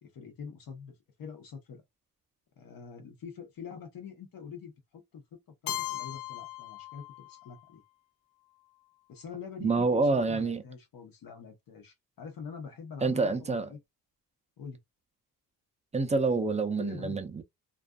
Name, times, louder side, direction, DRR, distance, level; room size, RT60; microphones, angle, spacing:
voice 1, 0.0-1.8 2.6-7.8 9.1-13.8 14.6-14.8 16.7-17.2, left 6 dB, 60° left, 1.0 m, -45 dB
Keyboard (musical), 5.7-7.6, left 15 dB, 90° left, 0.5 m, -38 dB
voice 2, 9.6-10.6 13.0-13.7 15.9-17.4, right 3 dB, 20° right, 0.4 m, -27 dB
2.5 x 2.4 x 2.2 m
cardioid pair, 110°, 38 cm